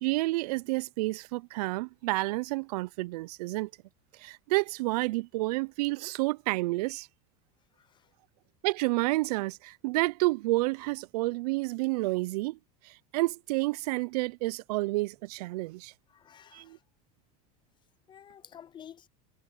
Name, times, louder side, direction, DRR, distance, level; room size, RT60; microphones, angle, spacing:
voice 1, 0.0-3.7 4.2-7.1 8.6-12.6 12.8-15.9 16.5-16.8, right 21 dB, 80° right, 0.5 m, -30 dB
voice 2, 16.1-16.8 18.1-19.1, left 9 dB, 25° left, 0.4 m, -51 dB
supercardioid pair, 115°, 20 cm